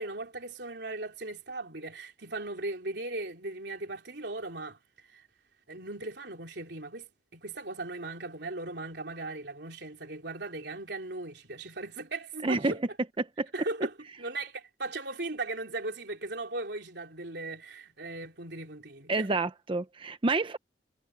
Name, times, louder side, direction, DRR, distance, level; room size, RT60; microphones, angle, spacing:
voice 1, 0.0-5.3 5.7-12.8 13.5-19.4, right 2 dB, 65° right, 3.8 m, -38 dB
voice 2, 12.4-12.7 13.2-13.5 19.1-20.6, right 3 dB, 30° right, 0.6 m, -28 dB
head